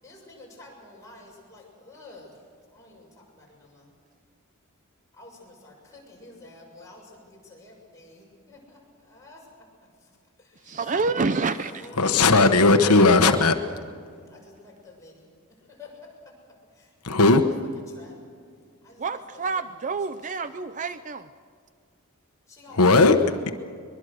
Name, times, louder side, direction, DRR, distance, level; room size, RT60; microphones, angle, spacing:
voice 1, 0.0-2.3 2.7-3.9 5.1-9.4 10.4-10.5 11.7-12.4 14.3-15.3 15.7-16.1 16.8-17.2 17.9-18.2 18.8-19.2 19.5-19.6 20.4-20.6 22.5-23.4, left 2 dB, 15° left, -3 dB, 7.0 m, -49 dB
voice 2, 10.6-11.9 19.0-21.3, right 4 dB, 35° right, 12 dB, 0.5 m, -28 dB
voice 3, 12.0-13.5 17.0-17.4 22.7-23.2, left 3 dB, 85° left, 7 dB, 1.2 m, -17 dB
23.0 x 22.5 x 6.5 m, 2.2 s
head